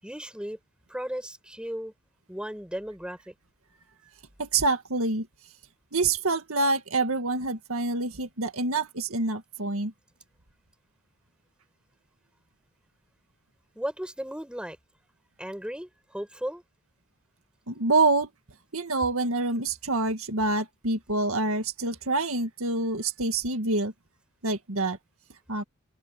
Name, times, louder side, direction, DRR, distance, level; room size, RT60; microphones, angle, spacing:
voice 1, 0.0-0.6 0.9-1.9 2.3-3.3 13.8-14.8 15.4-16.6, equal, 5° right, 7.0 m, -35 dB
voice 2, 4.4-5.3 5.9-9.9 17.7-18.3 18.7-23.9 24.4-25.0 25.5-25.6, right 3 dB, 85° right, 2.0 m, -26 dB
head